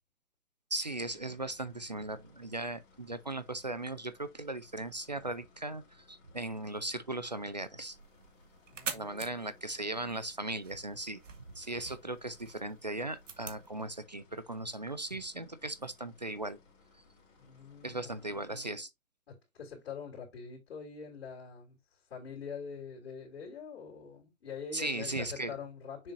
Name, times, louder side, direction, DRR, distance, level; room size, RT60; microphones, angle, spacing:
voice 1, 0.7-8.0 8.9-11.2 11.6-16.6 17.8-18.9 24.7-25.5, right 2 dB, 35° right, 0.4 m, -38 dB
Tractor Engine, 1.0-18.6, left 4 dB, 30° left, 2.5 m, -64 dB
sound 1, 7.9-13.7, right 6 dB, 65° right, 1.8 m, -46 dB
voice 2, 8.7-9.6 17.4-18.1 19.3-26.1, left 6 dB, 50° left, 3.3 m, -45 dB
7.0 x 5.4 x 2.6 m
hypercardioid pair, 160°, 41 cm